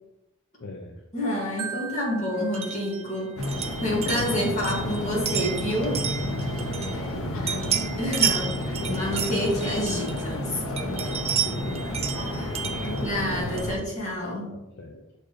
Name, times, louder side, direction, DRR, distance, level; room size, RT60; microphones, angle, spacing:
voice 1, 0.6-0.9 6.9-7.9 8.8-9.0 11.3-11.9 12.6-13.1 14.5-15.0, left 2 dB, 50° left, 3 dB, 0.5 m, -39 dB
voice 2, 1.1-6.1 8.0-10.6 12.0-14.5, left 1 dB, 35° left, -5 dB, 2.1 m, -29 dB
Marimba xylophone, 1.6-3.7, right 7 dB, 80° right, 0.5 m, -39 dB
sound 1, 2.5-7.2 7.5-10.4 10.8-13.8, right 8 dB, 30° right, 0.4 m, -32 dB
sound 2, 3.4-13.8, left 1 dB, 80° left, 1.0 m, -31 dB
6.6 x 4.4 x 3.2 m, 0.92 s
head